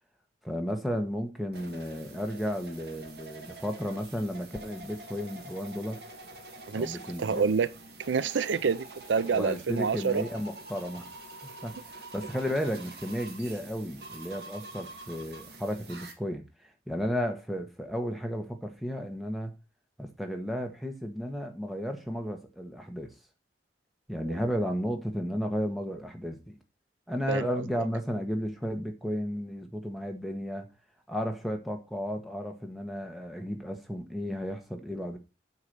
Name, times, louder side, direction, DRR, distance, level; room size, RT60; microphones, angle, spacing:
voice 1, 0.4-6.0 6.7-7.4 9.3-11.0 11.4-19.5 20.0-23.1 24.1-26.6 27.1-30.7 31.1-35.2, equal, ahead, 1.5 m, -33 dB
sound 1, 1.5-16.1, right 2 dB, 60° right, 2.1 m, -46 dB
voice 2, 6.7-7.7 8.1-10.3 24.3-24.4 27.3-27.6, right 5 dB, 90° right, 0.5 m, -28 dB
8.3 x 4.8 x 6.7 m
head